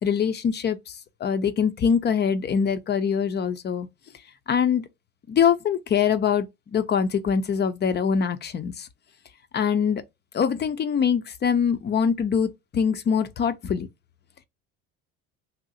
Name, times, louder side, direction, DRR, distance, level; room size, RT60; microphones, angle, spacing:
voice 1, 0.0-3.9 4.5-4.9 5.3-6.5 6.7-8.9 9.5-10.0 10.3-13.9, left 7 dB, 30° left, 0.5 m, -23 dB
2.7 x 2.0 x 3.9 m
supercardioid pair, 80°, 34 cm